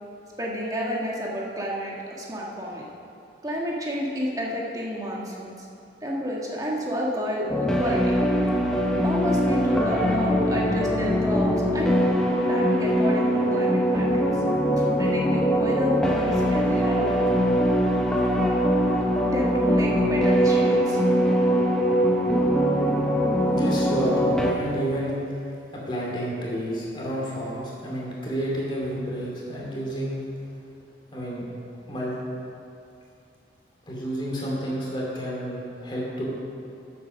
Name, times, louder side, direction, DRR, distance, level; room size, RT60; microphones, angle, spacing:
voice 1, 0.4-2.9 3.4-5.7 6.0-8.1 9.0-12.0 12.5-14.4 14.8-17.1 19.2-21.0, equal, 20° right, -3 dB, 1.5 m, -30 dB
sound 1, 7.5-24.5, equal, 5° left, 0.9 m, -22 dB
voice 2, 23.4-30.2 31.1-31.5 31.9-32.2 33.9-36.3, equal, 25° left, -4 dB, 2.7 m, -30 dB
9.3 x 8.1 x 6.2 m, 2.7 s
head